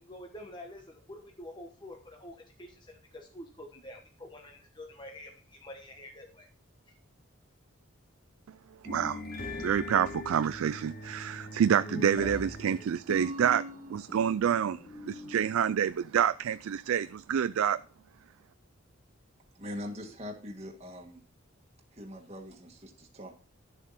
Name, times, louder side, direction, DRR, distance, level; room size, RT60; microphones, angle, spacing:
voice 1, 0.0-6.5 6.9-7.0, left 1 dB, 20° left, 1.1 m, -47 dB
sound 1, 8.8-15.4, left 1 dB, 45° left, 1.9 m, -40 dB
voice 2, 8.8-9.2 9.6-13.6 13.9-17.8, right 8 dB, 85° right, 0.4 m, -28 dB
voice 3, 19.5-21.2 21.9-23.4, left 1 dB, 30° right, 1.7 m, -42 dB
11.0 x 7.3 x 4.1 m
head